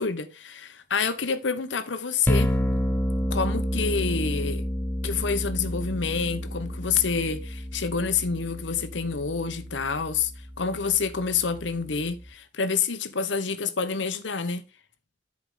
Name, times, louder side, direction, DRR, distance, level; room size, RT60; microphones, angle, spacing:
voice 1, 0.0-2.5 3.3-4.6 5.0-10.3 10.6-14.6, left 5 dB, 80° left, 0.9 m, -28 dB
sound 1, 2.3-12.3, equal, 10° left, 0.5 m, -30 dB
10.5 x 4.8 x 3.7 m
head